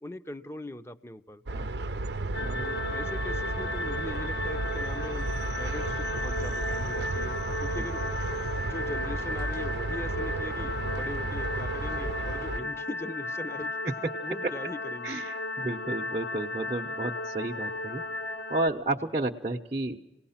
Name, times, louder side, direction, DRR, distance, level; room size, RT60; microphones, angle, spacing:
voice 1, 0.0-1.4 2.6-8.0 8.6-15.2, left 1 dB, 15° left, 10 dB, 0.7 m, -41 dB
sound 1, 1.5-12.6, right 2 dB, 80° right, 0.7 m, -33 dB
sound 2, 2.3-18.7, left 2 dB, 75° left, 1.1 m, -35 dB
voice 2, 15.0-18.0 18.5-20.0, right 2 dB, 35° right, -2 dB, 0.8 m, -32 dB
27.5 x 18.5 x 5.7 m, 0.93 s
head